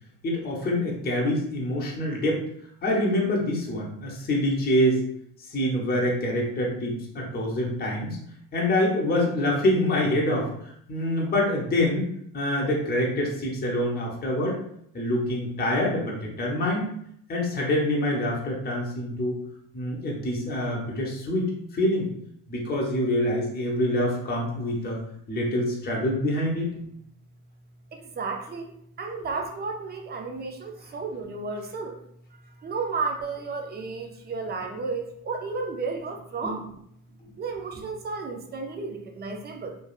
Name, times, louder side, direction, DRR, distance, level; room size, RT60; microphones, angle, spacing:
voice 1, 0.2-2.4 2.8-5.0 5.5-8.2 8.5-10.5 10.9-12.1 12.3-14.6 14.9-16.9 17.3-19.4 19.7-22.1 22.5-25.0 25.3-26.7 36.4-36.5, left 1 dB, 25° left, -2 dB, 0.8 m, -25 dB
voice 2, 27.9-32.0 32.5-36.8 37.4-39.8, right 4 dB, 25° right, 3 dB, 0.4 m, -33 dB
3.1 x 2.2 x 2.4 m, 0.69 s
supercardioid pair, 85°, 41 cm